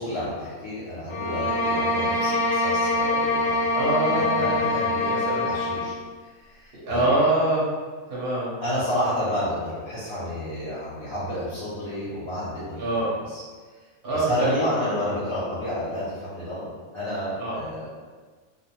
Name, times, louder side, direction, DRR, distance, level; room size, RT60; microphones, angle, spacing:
voice 1, 0.0-3.7 4.0-5.9 6.4-7.0 8.6-12.8 13.3-13.4 14.1-17.9, left 1 dB, 55° left, -9 dB, 1.0 m, -30 dB
sound 1, 1.1-5.9, left 2 dB, 85° left, 1.1 m, -24 dB
voice 2, 3.7-4.7 5.0-5.5 6.7-7.6 8.1-8.5 12.8-13.1 14.0-15.1 17.4-17.6, right 2 dB, 50° right, -8 dB, 0.9 m, -25 dB
2.5 x 2.3 x 2.9 m, 1.5 s
omnidirectional pair, 1.4 m